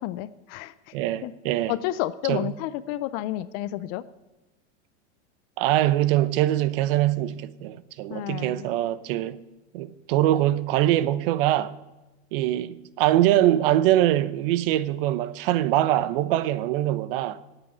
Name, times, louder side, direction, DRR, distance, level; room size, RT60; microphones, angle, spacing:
voice 1, 0.0-0.9 1.2-1.3 1.7-4.0 8.1-8.7, left 14 dB, 35° left, 0.4 m, -31 dB
voice 2, 0.9-1.7 2.3-2.5 5.6-9.4 9.7-11.7 12.3-17.4, right 13 dB, 50° right, 0.8 m, -23 dB
9.8 x 8.1 x 9.2 m
supercardioid pair, 140°, 35 cm